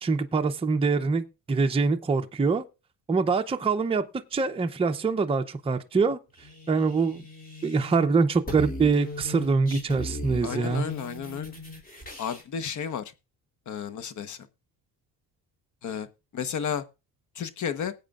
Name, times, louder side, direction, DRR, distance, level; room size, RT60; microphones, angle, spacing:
voice 1, 0.0-2.6 3.1-4.0 4.3-6.2 6.7-7.2 7.6-10.8, right 4 dB, 15° right, 0.6 m, -24 dB
sound 1, 6.4-8.1 8.3-12.4, left 1 dB, 25° left, 3.6 m, -38 dB
voice 2, 10.4-11.5 12.2-13.0 13.7-14.4 15.8-16.1 16.3-16.8 17.4-17.9, left 7 dB, 50° left, 1.1 m, -32 dB
19.5 x 8.4 x 2.5 m
cardioid pair, 135°, 38 cm